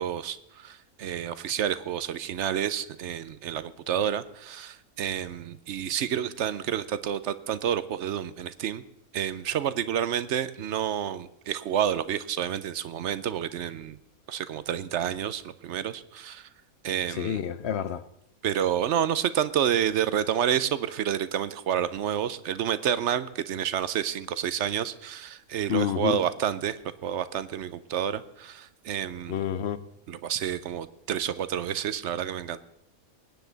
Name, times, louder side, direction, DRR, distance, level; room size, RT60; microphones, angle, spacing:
voice 1, 0.0-8.8 9.1-14.0 14.3-16.5 16.8-17.4 18.4-29.3 30.1-32.6, right 9 dB, 60° right, 0.8 m, -29 dB
voice 2, 17.2-18.0 25.7-26.1 29.3-29.8, left 9 dB, 60° left, 0.7 m, -28 dB
21.0 x 9.7 x 4.0 m
omnidirectional pair, 1.5 m